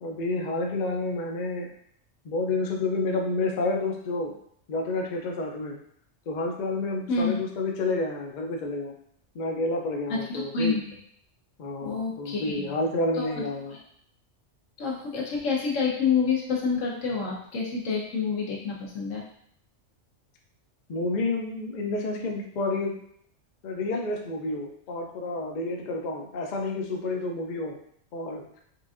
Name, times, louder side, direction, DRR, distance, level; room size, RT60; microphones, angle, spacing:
voice 1, 0.0-1.7 2.2-4.3 4.7-5.8 6.3-8.9 9.3-10.8 11.6-13.7 20.9-23.0 23.6-27.8 28.1-28.4, left 2 dB, 55° left, 1 dB, 0.5 m, -29 dB
voice 2, 7.1-7.4 10.1-11.0 11.8-12.7 13.2-13.3 14.8-19.2, left 5 dB, 85° left, -3 dB, 1.3 m, -28 dB
4.5 x 2.5 x 2.4 m, 0.66 s
omnidirectional pair, 1.3 m